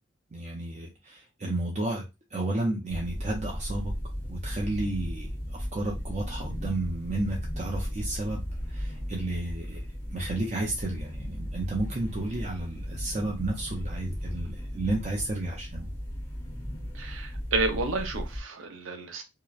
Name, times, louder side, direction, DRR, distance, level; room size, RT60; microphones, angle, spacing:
voice 1, 0.3-2.0 2.3-3.9 4.3-8.4 8.7-15.9, right 2 dB, 35° right, 0.5 m, -32 dB
sound 1, 2.9-18.4, equal, 10° left, 0.6 m, -36 dB
voice 2, 16.9-19.2, right 3 dB, 90° right, 0.6 m, -31 dB
2.8 x 2.0 x 2.3 m
head